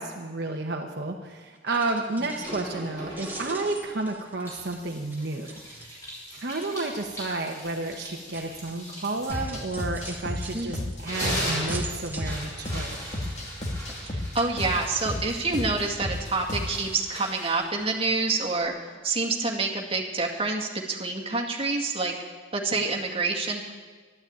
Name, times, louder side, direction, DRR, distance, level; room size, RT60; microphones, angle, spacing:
voice 1, 0.0-5.5 5.9-6.0 6.3-13.0, right 2 dB, 60° right, 1 dB, 1.1 m, -31 dB
sound 1, 1.6-2.9 3.1-6.3 6.6-7.0 7.7-15.2 15.5-16.2 16.5-16.7 17.2-17.3 17.6-17.7, right 3 dB, 10° right, 1.5 m, -45 dB
sound 2, 2.4-4.0 4.5-10.5 10.9-18.7, equal, 20° left, 5.5 m, -38 dB
sound 3, 9.3-16.9, left 1 dB, 35° left, 1.9 m, -33 dB
voice 2, 14.0-18.7 19.0-22.1 22.5-23.7, right 3 dB, 30° right, -1 dB, 2.0 m, -27 dB
12.0 x 12.0 x 8.8 m, 1.4 s
head